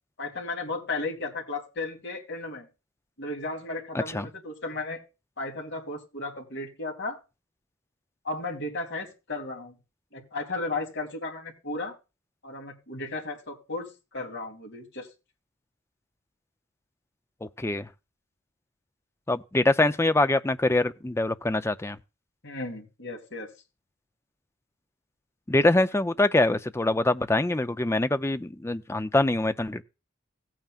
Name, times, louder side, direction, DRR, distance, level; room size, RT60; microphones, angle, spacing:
voice 1, 0.2-2.7 3.2-5.0 5.4-7.2 8.2-9.8 10.1-11.9 12.4-15.1 22.4-23.5, left 3 dB, 55° left, 3.1 m, -34 dB
voice 2, 3.9-4.3 17.6-17.9 19.3-22.0 25.5-29.8, left 2 dB, 10° left, 0.5 m, -24 dB
17.5 x 9.0 x 2.4 m
head